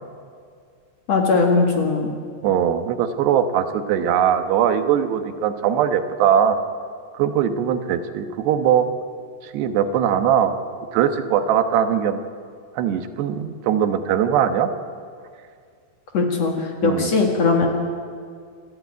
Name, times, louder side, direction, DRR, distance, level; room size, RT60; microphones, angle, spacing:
voice 1, 1.1-2.1 16.1-17.7, left 4 dB, 50° left, 2 dB, 2.6 m, -19 dB
voice 2, 2.4-6.6 7.1-8.9 9.4-10.7 10.9-12.2 12.8-14.7 16.8-17.1, right 9 dB, 85° right, 9 dB, 3.3 m, -20 dB
28.0 x 13.0 x 9.4 m, 2.1 s
omnidirectional pair, 4.7 m